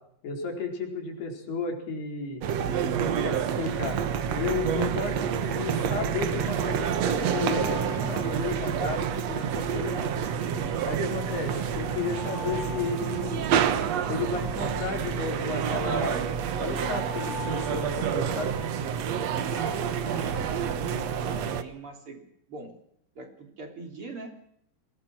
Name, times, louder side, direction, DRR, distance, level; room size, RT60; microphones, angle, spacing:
voice 1, 0.2-2.5 3.0-4.0 4.3-10.1 10.9-13.5 14.1-16.2 16.6-18.6, left 4 dB, 70° left, 2 dB, 6.5 m, -33 dB
sound 1, 2.4-21.6, right 8 dB, 65° right, 1.7 m, -28 dB
Alarm, 3.7-4.1 5.8-9.6 10.7-14.4 15.5-18.8, left 8 dB, 90° left, 4.3 m, -45 dB
voice 2, 19.5-22.2 22.5-22.7 23.2-24.3, right 3 dB, 35° right, 3 dB, 3.7 m, -42 dB
22.5 x 20.0 x 6.3 m, 0.74 s
omnidirectional pair, 4.7 m